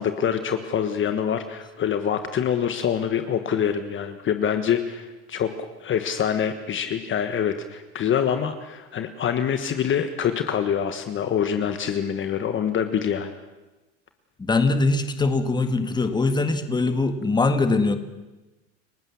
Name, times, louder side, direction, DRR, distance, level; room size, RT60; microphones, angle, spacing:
voice 1, 0.0-13.3, left 8 dB, 30° left, 8 dB, 1.4 m, -25 dB
voice 2, 14.4-18.0, left 3 dB, 10° left, 8 dB, 1.7 m, -22 dB
30.0 x 17.5 x 7.2 m, 1.1 s
supercardioid pair, 135°, 40 cm